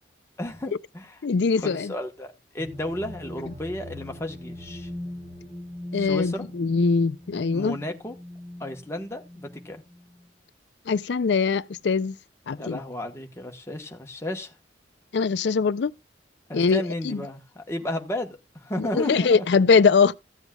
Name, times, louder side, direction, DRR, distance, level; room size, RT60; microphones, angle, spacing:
voice 1, 0.4-1.2 1.6-4.9 5.9-6.4 7.5-8.2 8.6-9.8 12.6-14.5 16.5-19.4, left 1 dB, 15° left, 1.1 m, -33 dB
voice 2, 1.2-1.9 5.9-7.8 10.9-12.2 12.5-12.8 15.1-15.9 16.5-17.2 18.8-20.1, left 5 dB, 70° left, 0.4 m, -22 dB
sound 1, 2.6-10.3, left 1 dB, 45° right, 6.0 m, -41 dB
15.5 x 8.1 x 2.3 m
head